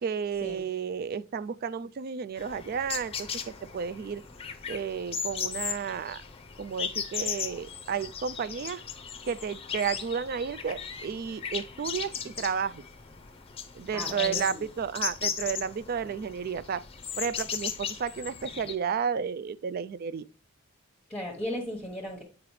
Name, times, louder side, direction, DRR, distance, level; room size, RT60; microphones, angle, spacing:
voice 1, 0.0-4.2 4.7-6.2 6.6-8.8 9.3-12.8 13.7-16.8 17.2-20.3, right 6 dB, 45° right, 0.3 m, -32 dB
sound 1, 2.4-18.7, left 7 dB, 25° left, 0.6 m, -37 dB
voice 2, 13.9-14.6 21.1-22.2, equal, 5° left, 1.1 m, -36 dB
8.5 x 4.8 x 3.1 m
head